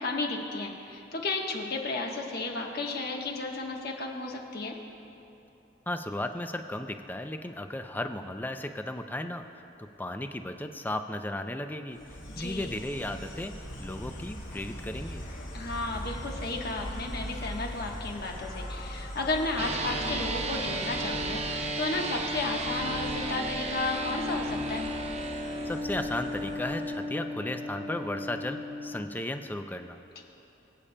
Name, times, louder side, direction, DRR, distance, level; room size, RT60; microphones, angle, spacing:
voice 1, 0.0-4.7 12.4-12.7 15.5-24.8 30.2-30.3, left 3 dB, 55° left, 1 dB, 1.2 m, -33 dB
voice 2, 5.9-9.4 9.8-12.0 12.4-13.5 13.8-15.3 25.6-30.0, left 1 dB, 10° left, 7 dB, 0.4 m, -35 dB
Insect, 11.9-27.0, equal, 75° left, 2.8 m, -41 dB
sound 1, 19.6-29.0, right 1 dB, 35° right, 0.7 m, -34 dB
24.0 x 8.5 x 2.2 m, 2.8 s
head